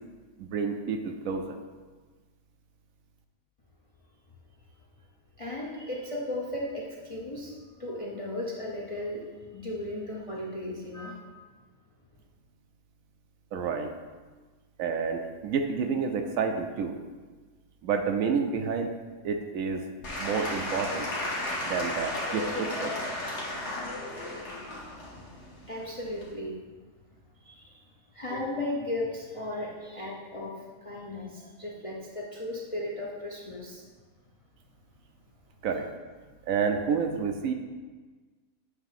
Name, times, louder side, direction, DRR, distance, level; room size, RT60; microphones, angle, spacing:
voice 1, 0.4-1.6 13.5-13.9 14.8-16.9 17.8-18.9 19.2-19.9 20.2-21.1 21.6-22.9 35.6-35.9 36.5-37.5, right 5 dB, 70° right, 5 dB, 0.9 m, -29 dB
voice 2, 5.4-7.5 7.8-11.2 25.7-26.6 27.4-27.8 28.1-30.5 30.8-33.8, left 1 dB, 30° left, -3 dB, 0.6 m, -35 dB
Applause / Crowd, 20.0-26.3, left 1 dB, 55° left, 1.5 m, -34 dB
8.0 x 2.9 x 5.7 m, 1.4 s
omnidirectional pair, 1.6 m